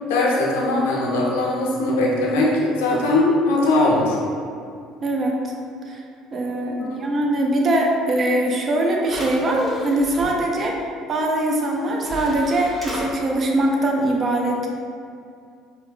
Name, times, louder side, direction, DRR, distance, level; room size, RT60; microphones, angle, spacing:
voice 1, 0.1-4.2 6.8-7.2, left 2 dB, 85° left, -3 dB, 0.5 m, -20 dB
voice 2, 5.0-5.5 5.9-6.0 6.3-10.8 11.1-14.7, right 1 dB, 40° right, 0 dB, 0.5 m, -22 dB
sound 1, 8.5-8.6 9.0-10.3 11.6-11.7 12.0-13.1, equal, 20° right, 1.0 m, -34 dB
4.6 x 2.1 x 2.4 m, 2.3 s
hypercardioid pair, 75°, 0 cm